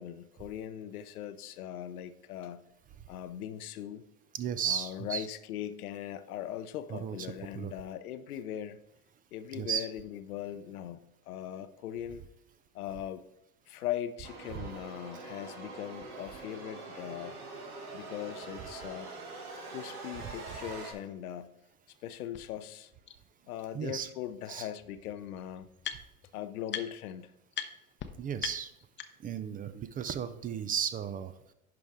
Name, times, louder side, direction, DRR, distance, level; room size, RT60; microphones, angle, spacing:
voice 1, 0.0-2.6 3.1-4.0 4.6-8.8 9.3-12.2 12.7-13.3 13.7-17.4 17.9-19.1 19.6-21.5 22.0-22.9 23.5-25.7 26.3-27.3, left 11 dB, 80° left, 12 dB, 0.8 m, -40 dB
voice 2, 4.3-5.3 6.9-7.2 7.5-7.7 9.5-9.9 14.5-14.7 23.7-24.1 24.5-24.7 28.2-28.7 29.2-31.3, right 8 dB, 20° right, 13 dB, 0.4 m, -34 dB
sound 1, 14.2-20.9, right 3 dB, 80° right, 2.1 m, -44 dB
sound 2, 22.3-22.4 23.1-23.2 24.5-24.6 24.8-26.3 26.7-27.1 27.5-27.7 28.0-28.1 28.4-29.4, left 9 dB, 25° left, 0.7 m, -40 dB
10.5 x 5.0 x 3.6 m, 0.84 s
hypercardioid pair, 90°, 44 cm